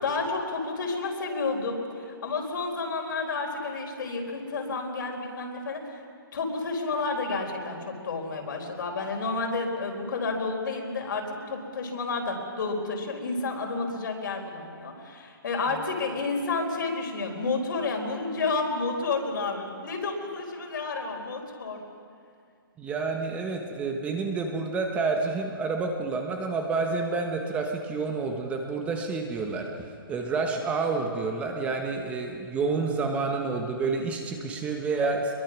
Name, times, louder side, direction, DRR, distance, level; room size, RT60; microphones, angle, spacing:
voice 1, 0.0-6.0 6.3-21.8, left 3 dB, 60° left, 2 dB, 4.4 m, -30 dB
voice 2, 22.8-35.3, right 4 dB, 10° right, 3 dB, 1.2 m, -29 dB
24.0 x 22.5 x 6.1 m, 2.3 s
hypercardioid pair, 165°, 12 cm